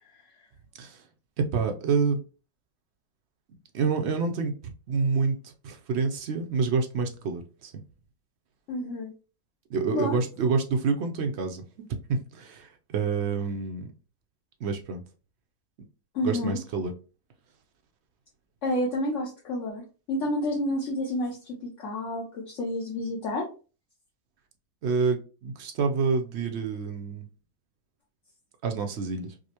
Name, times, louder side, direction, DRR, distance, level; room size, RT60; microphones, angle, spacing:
voice 1, 1.4-2.2 3.7-7.7 9.7-11.6 12.1-13.9 14.6-15.0 16.2-16.9 24.8-27.3 28.6-29.3, right 5 dB, 60° right, 5 dB, 0.8 m, -28 dB
voice 2, 8.7-9.1 9.9-10.2 16.1-16.6 18.6-23.5, left 1 dB, 60° left, -3 dB, 1.1 m, -30 dB
5.0 x 2.1 x 2.8 m, 0.35 s
omnidirectional pair, 1.5 m